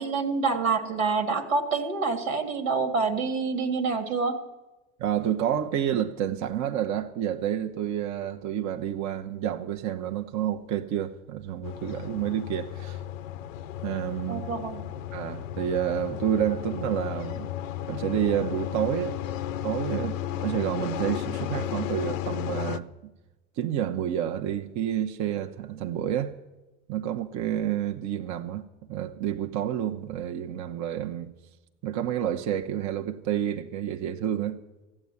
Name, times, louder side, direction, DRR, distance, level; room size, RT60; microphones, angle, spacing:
voice 1, 0.0-4.4 14.3-14.8, right 4 dB, 85° right, 1.9 m, -27 dB
voice 2, 5.0-13.0 13.8-14.5 15.1-17.5 17.9-19.2 19.6-23.1 23.6-26.3 26.9-31.3 31.8-34.6, right 10 dB, 45° right, 1.0 m, -29 dB
sound 1, 11.6-22.8, left 11 dB, 80° left, 0.7 m, -34 dB
15.0 x 8.7 x 9.5 m
hypercardioid pair, 90°, 39 cm